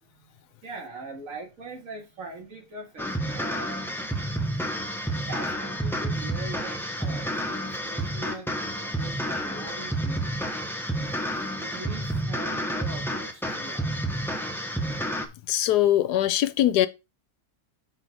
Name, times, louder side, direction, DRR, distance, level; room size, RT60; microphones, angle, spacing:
voice 1, 0.0-4.1 5.3-10.2 11.1-13.9, right 3 dB, 45° right, 2.4 m, -42 dB
sound 1, 3.0-15.3, right 1 dB, ahead, 0.5 m, -30 dB
voice 2, 15.5-16.9, left 12 dB, 75° left, 1.1 m, -21 dB
6.2 x 4.4 x 5.2 m
omnidirectional pair, 1.9 m